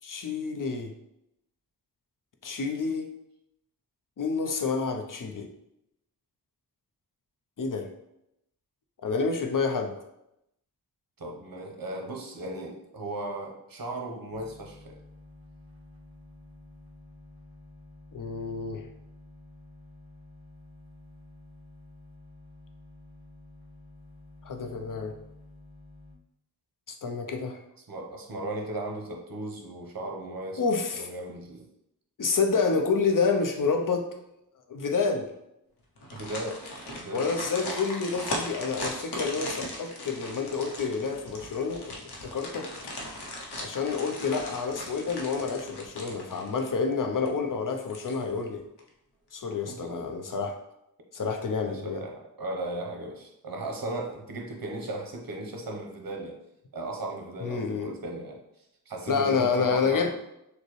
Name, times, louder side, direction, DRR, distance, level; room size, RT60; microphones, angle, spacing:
voice 1, 0.0-0.9 2.4-3.1 4.2-5.5 7.6-7.9 9.0-9.9 18.1-18.8 24.4-25.1 26.9-27.6 30.6-31.1 32.2-34.1 34.7-35.3 37.1-42.0 42.3-42.7 43.6-48.6 49.3-50.6 51.1-52.0 57.4-57.9 59.1-60.1, left 5 dB, 55° left, 4 dB, 0.7 m, -28 dB
voice 2, 11.2-15.0 27.9-30.6 30.9-31.6 36.1-37.3 49.7-49.9 51.7-56.4 56.7-58.4 58.9-60.1, right 2 dB, 60° right, 1 dB, 1.0 m, -36 dB
sound 1, 14.3-26.2, left 2 dB, 15° left, 1.0 m, -51 dB
sound 2, 36.0-46.9 47.3-47.4 47.8-48.4 48.8-48.9, left 1 dB, 80° left, 0.9 m, -38 dB
6.5 x 2.2 x 3.2 m, 0.83 s
wide cardioid pair, 75°, 39 cm